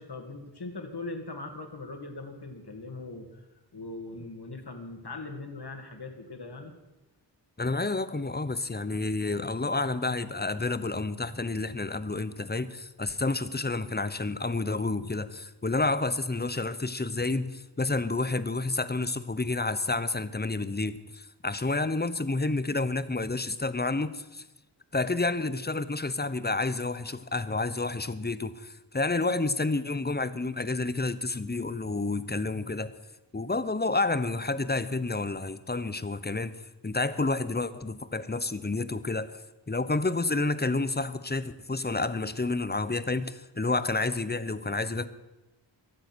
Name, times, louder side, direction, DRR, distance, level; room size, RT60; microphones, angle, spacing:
voice 1, 0.0-3.4 3.7-6.7, left 2 dB, 60° left, 5 dB, 2.5 m, -40 dB
voice 2, 7.6-24.4 24.9-32.9 33.3-39.3 39.7-45.1, left 3 dB, 20° left, 13 dB, 0.9 m, -30 dB
23.0 x 7.9 x 6.3 m, 1.0 s
wide cardioid pair, 45°, 45 cm